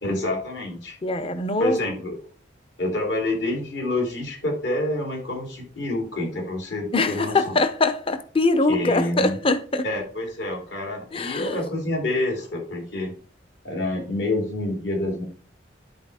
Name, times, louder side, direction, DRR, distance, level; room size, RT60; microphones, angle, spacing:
voice 1, 0.0-1.0 1.6-2.1 2.8-7.6 8.7-9.4 9.8-13.1 13.6-15.2, left 1 dB, 70° left, 3.6 m, -27 dB
voice 2, 1.0-1.8 6.9-9.8 11.1-11.6, left 2 dB, 30° left, 0.7 m, -23 dB
10.5 x 4.2 x 4.9 m
head